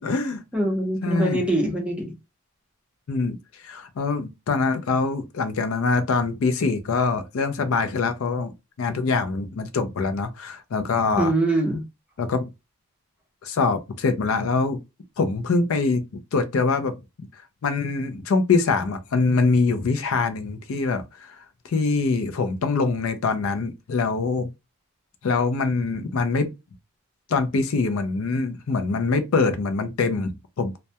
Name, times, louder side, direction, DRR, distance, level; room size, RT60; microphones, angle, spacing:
voice 1, 0.0-0.4 1.0-1.5 3.1-8.5 8.8-11.3 12.2-12.5 13.4-14.8 15.2-16.0 16.3-24.5 25.2-26.5 27.3-30.8, left 4 dB, 70° left, 0.4 m, -24 dB
voice 2, 0.5-2.1 11.2-11.8, right 1 dB, 5° right, 0.6 m, -23 dB
2.2 x 2.1 x 2.7 m
head